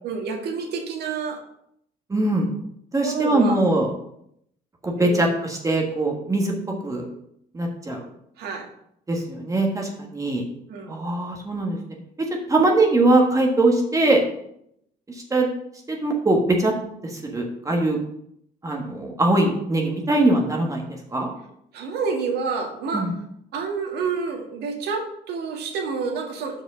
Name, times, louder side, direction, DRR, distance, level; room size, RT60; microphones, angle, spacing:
voice 1, 0.0-1.4 2.9-3.6 5.0-5.2 8.4-8.7 10.7-11.1 21.7-23.1 23.5-26.6, right 5 dB, 75° right, 2 dB, 1.8 m, -28 dB
voice 2, 2.1-2.5 2.9-3.9 4.8-6.5 6.8-7.0 7.5-8.0 9.1-10.4 10.9-11.8 12.2-14.2 15.1-15.5 15.9-16.7 17.0-18.0 18.6-20.8 21.1-21.3 22.9-23.1, right 2 dB, 20° right, 0 dB, 1.4 m, -21 dB
6.2 x 5.1 x 6.2 m, 0.73 s
cardioid pair, 110°, 17 cm